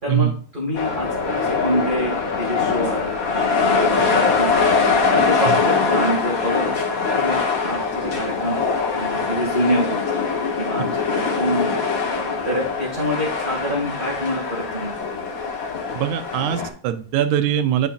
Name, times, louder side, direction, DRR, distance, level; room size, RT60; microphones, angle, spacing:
voice 1, 0.0-4.6 5.1-7.4 7.6-8.6 8.9-10.0 10.6-11.7 12.4-15.0, equal, 20° right, -5 dB, 2.0 m, -26 dB
sound 1, 0.7-16.7, left 5 dB, 80° left, 0.7 m, -22 dB
voice 2, 15.9-17.9, right 10 dB, 75° right, 11 dB, 2.1 m, -22 dB
9.7 x 5.6 x 2.5 m, 0.41 s
omnidirectional pair, 3.6 m